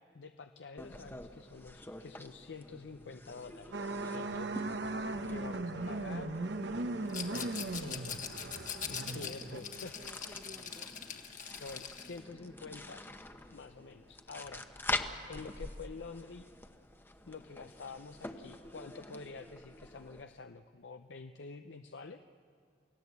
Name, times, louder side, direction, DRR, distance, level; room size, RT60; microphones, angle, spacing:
voice 1, 0.0-4.5 5.2-6.3 7.8-8.2 8.9-10.0 10.3-10.4 11.6-13.0 13.5-14.7 15.3-16.5 17.3-22.2, left 4 dB, 85° left, 8 dB, 0.6 m, -48 dB
sound 1, 0.8-20.2, left 2 dB, 10° left, 0.9 m, -46 dB
sound 2, 3.7-9.6, right 2 dB, 75° right, 1.0 m, -38 dB
voice 2, 5.3-10.9, right 1 dB, 40° right, 4 dB, 1.2 m, -52 dB
Rattle, 7.1-12.2, left 8 dB, 50° left, 1.6 m, -42 dB
28.5 x 16.5 x 8.2 m, 2.3 s
head